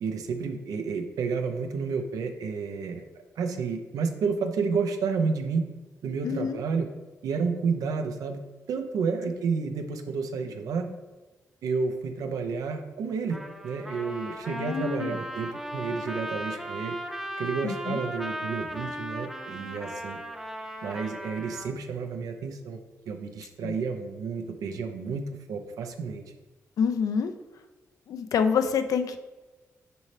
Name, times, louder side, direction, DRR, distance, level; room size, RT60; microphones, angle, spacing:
voice 1, 0.0-3.0 3.4-5.7 6.0-6.9 7.2-8.4 8.7-10.9 11.6-17.0 17.4-20.2 20.8-22.8 23.1-26.2, right 5 dB, 80° right, 6 dB, 0.6 m, -30 dB
voice 2, 6.2-6.6 14.5-15.2 17.6-18.0 23.6-23.8 26.8-27.3 28.1-29.2, left 6 dB, 75° left, 8 dB, 0.5 m, -27 dB
Trumpet, 13.3-21.7, right 1 dB, 5° right, 0.7 m, -37 dB
6.9 x 4.3 x 3.3 m, 1.2 s
cardioid pair, 70°, 6 cm